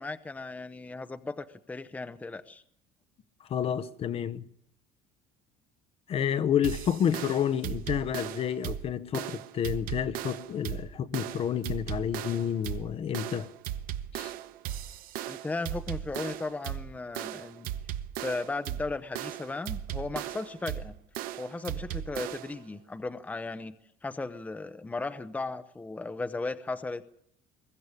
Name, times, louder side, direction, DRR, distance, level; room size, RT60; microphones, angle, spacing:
voice 1, 0.0-2.6 15.2-17.7 18.2-20.9 21.4-23.8 24.0-27.0, left 3 dB, 10° left, 0.8 m, -36 dB
voice 2, 3.5-4.4 6.1-13.5 14.1-14.3, left 9 dB, 40° left, 0.9 m, -30 dB
sound 1, 6.6-22.6, right 12 dB, 65° right, 1.0 m, -37 dB
22.5 x 14.0 x 9.8 m
cardioid pair, 145°, 16 cm